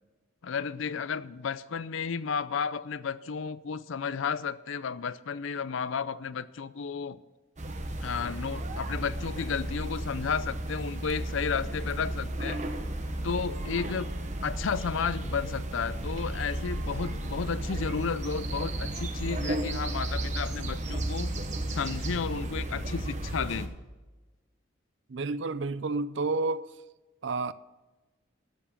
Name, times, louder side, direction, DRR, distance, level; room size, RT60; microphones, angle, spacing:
voice 1, 0.4-7.2 8.0-12.6 13.2-14.1 14.4-21.4 21.7-23.7, left 6 dB, 75° left, 0.5 m, -33 dB
sound 1, 7.6-23.7, right 1 dB, 35° right, 1.0 m, -34 dB
voice 2, 25.1-26.7 27.2-27.5, right 3 dB, 60° right, 0.5 m, -30 dB
13.0 x 7.2 x 7.0 m
head